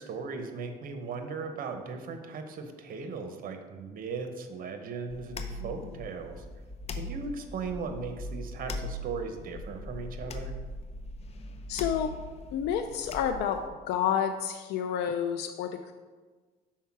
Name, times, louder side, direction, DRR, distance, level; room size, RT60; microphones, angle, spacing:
voice 1, 0.0-6.4 6.9-10.6, right 4 dB, 55° right, 7 dB, 0.9 m, -38 dB
sound 1, 5.1-13.7, left 1 dB, 40° left, 0.6 m, -40 dB
voice 2, 11.7-12.1 12.5-13.6 13.9-15.9, left 8 dB, 80° left, 7 dB, 0.4 m, -29 dB
5.7 x 4.4 x 5.9 m, 1.4 s
cardioid pair, 110°, 17 cm